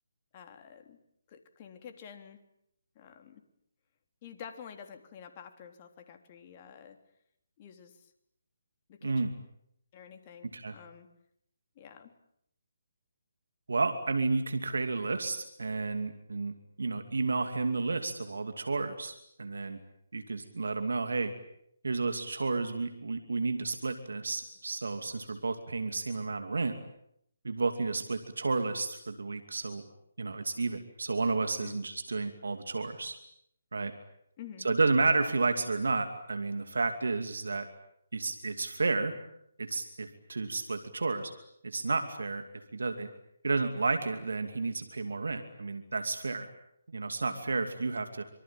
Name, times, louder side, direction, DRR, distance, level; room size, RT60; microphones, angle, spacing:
voice 1, 0.3-1.0 1.3-2.4 3.0-3.4 4.2-7.0 7.6-8.1 8.9-9.2 9.9-11.1 11.8-12.1 31.6-31.8 34.4-34.7, left 8 dB, 35° left, 5 dB, 3.4 m, -49 dB
voice 2, 13.7-19.8 20.1-21.3 21.8-26.8 27.4-29.8 30.2-33.2 33.7-33.9 34.6-37.7 38.1-39.1 39.6-41.3 41.6-42.4 42.7-43.1 43.4-46.5 46.9-48.2, right 3 dB, 80° right, 8 dB, 2.6 m, -31 dB
26.0 x 24.0 x 8.9 m, 0.74 s
figure-of-eight pair, 150°, 0 cm